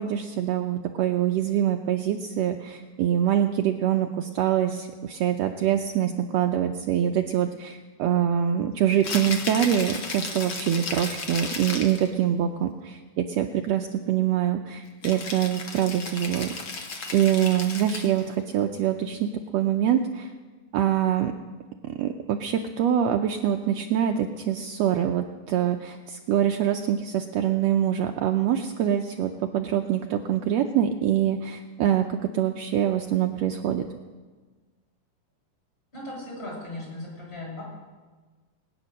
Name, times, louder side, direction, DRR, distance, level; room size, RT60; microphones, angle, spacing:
voice 1, 0.0-16.5 17.1-20.3 20.7-21.3 21.8-32.1 32.3-33.9, right 10 dB, 85° right, 4 dB, 1.5 m, -25 dB
Rattle (instrument), 8.9-12.1 15.0-18.3, left 4 dB, 50° left, 1.6 m, -34 dB
voice 2, 35.9-37.6, left 1 dB, 30° left, -3 dB, 6.8 m, -37 dB
20.5 x 9.7 x 6.4 m, 1.4 s
omnidirectional pair, 3.8 m